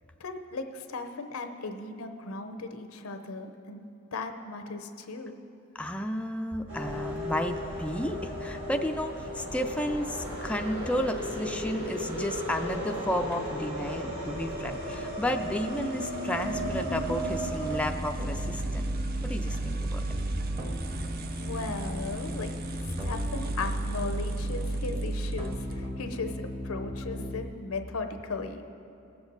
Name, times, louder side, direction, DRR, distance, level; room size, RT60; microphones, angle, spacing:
voice 1, 0.2-3.9 4.1-5.4 21.4-22.5 23.0-26.3 26.6-28.6, left 3 dB, 90° left, 6 dB, 0.8 m, -37 dB
voice 2, 5.8-18.9 19.2-20.0 23.0-23.1, equal, 5° left, 5 dB, 0.3 m, -32 dB
sound 1, 6.7-17.8, equal, 80° right, 2.6 m, -35 dB
sound 2, 13.3-26.0, right 2 dB, 45° right, 0.6 m, -43 dB
sound 3, 16.4-27.4, right 1 dB, 30° right, 0.9 m, -33 dB
19.0 x 7.0 x 3.9 m, 2.9 s
head